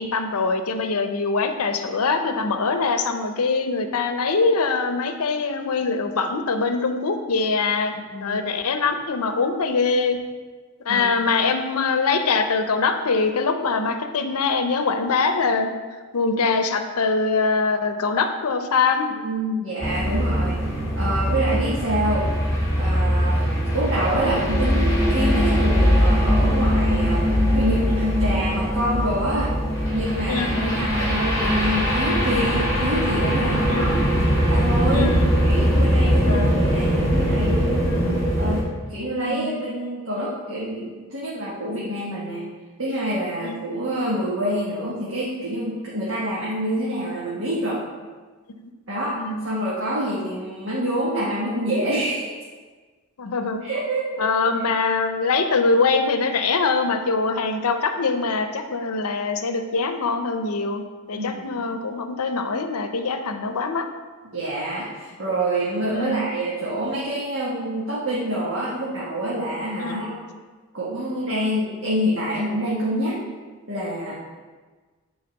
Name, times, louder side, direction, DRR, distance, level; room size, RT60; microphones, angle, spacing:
voice 1, 0.0-7.9 8.2-10.2 10.8-15.7 16.1-19.1 30.3-30.9 33.7-34.0 34.9-35.3 36.2-36.6 37.9-38.2 39.2-39.6 43.4-43.5 48.6-48.7 49.2-49.5 53.2-53.7 54.2-60.8 61.1-63.9 65.9-66.2 69.8-70.0, left 4 dB, 85° left, 7 dB, 0.6 m, -23 dB
voice 2, 7.9-8.4 10.9-11.1 19.1-20.7 21.0-22.2 22.8-27.2 27.5-29.5 29.9-33.9 34.5-35.1 35.4-38.0 38.4-38.6 38.9-42.4 42.8-47.8 48.9-49.2 49.4-52.4 53.6-54.2 61.2-61.4 64.3-70.1 70.7-73.2 73.7-74.1, right 1 dB, 60° right, -8 dB, 1.5 m, -26 dB
sound 1, 19.8-38.6, equal, 15° left, 2.1 m, -21 dB
8.7 x 4.0 x 5.2 m, 1.4 s
head